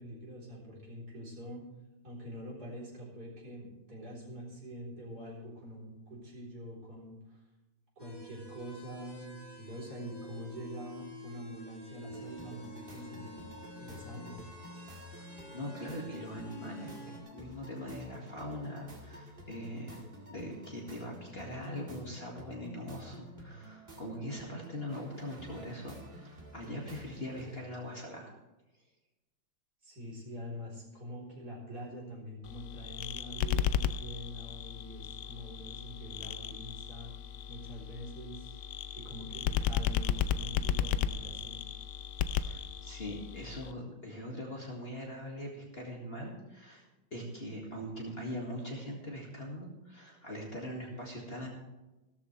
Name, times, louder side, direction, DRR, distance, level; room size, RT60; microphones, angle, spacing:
voice 1, 0.0-1.6 2.0-7.4 8.0-13.4 13.8-14.5 29.8-37.1 37.5-38.6 38.9-41.6, equal, 50° right, -4 dB, 4.4 m, -45 dB
sound 1, 8.0-17.2, equal, 10° left, 2.1 m, -49 dB
sound 2, 12.1-27.6, equal, 30° right, 2.0 m, -51 dB
voice 2, 15.1-20.0 20.3-28.3 42.3-46.8 47.1-51.5, left 1 dB, 30° left, -2 dB, 2.1 m, -42 dB
sound 3, 32.4-43.7, left 9 dB, 75° left, 1.1 m, -35 dB
15.5 x 13.5 x 3.3 m, 1.1 s
omnidirectional pair, 2.1 m